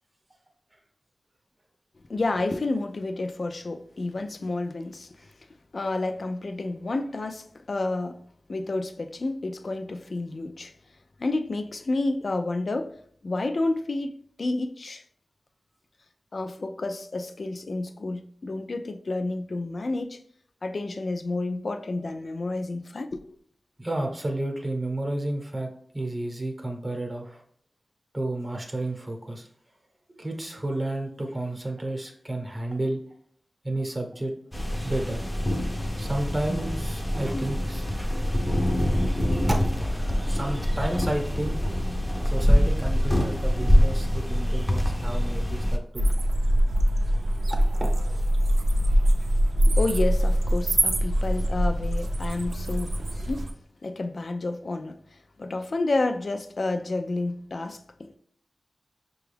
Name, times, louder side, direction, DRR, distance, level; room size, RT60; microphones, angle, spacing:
voice 1, 2.1-5.3 5.7-8.2 8.5-10.8 11.2-15.0 16.3-20.2 20.6-23.4 49.6-53.5 53.8-58.2, left 2 dB, 55° left, 0.4 m, -30 dB
voice 2, 23.8-25.7 25.9-27.4 28.1-29.5 30.1-33.0 33.6-34.3 34.8-35.2 36.0-41.8 42.2-46.1 47.5-48.3, right 1 dB, 25° right, 0.8 m, -32 dB
sound 1, 34.5-45.8, equal, 5° left, 0.6 m, -24 dB
sound 2, 46.0-53.5, equal, 75° right, 0.5 m, -23 dB
6.0 x 2.3 x 3.3 m
wide cardioid pair, 105°, 0 cm